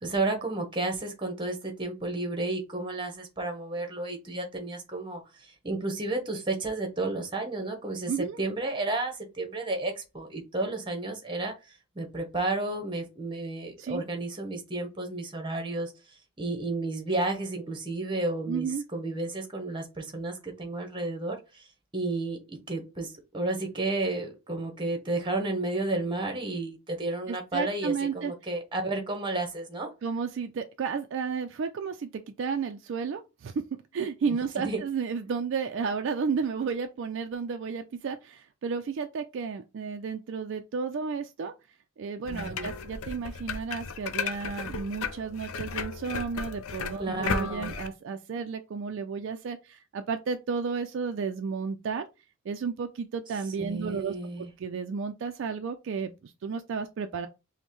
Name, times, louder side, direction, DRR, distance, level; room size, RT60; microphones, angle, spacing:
voice 1, 0.0-15.9 16.4-21.7 21.9-29.9 34.6-34.8 42.3-42.7 47.0-47.7 53.6-54.5, right 2 dB, 20° right, 0.9 m, -32 dB
voice 2, 8.1-8.4 13.8-14.0 18.5-18.8 27.3-28.3 30.0-33.6 33.9-41.5 42.0-52.0 52.5-57.3, right 5 dB, 55° right, 0.3 m, -32 dB
sound 1, 42.3-47.9, left 5 dB, 80° left, 0.5 m, -35 dB
5.1 x 2.1 x 3.0 m
head